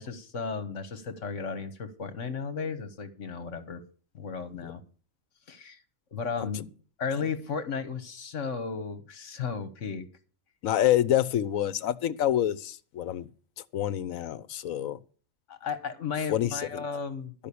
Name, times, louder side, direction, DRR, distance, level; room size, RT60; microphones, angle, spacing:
voice 1, 0.0-3.8 4.1-4.8 5.5-5.8 6.1-6.7 7.0-10.1 15.5-17.3, left 5 dB, 65° left, 1.5 m, -34 dB
voice 2, 10.6-13.3 13.7-15.0 16.3-16.8, left 11 dB, 80° left, 1.1 m, -27 dB
12.5 x 5.5 x 8.4 m
omnidirectional pair, 1.4 m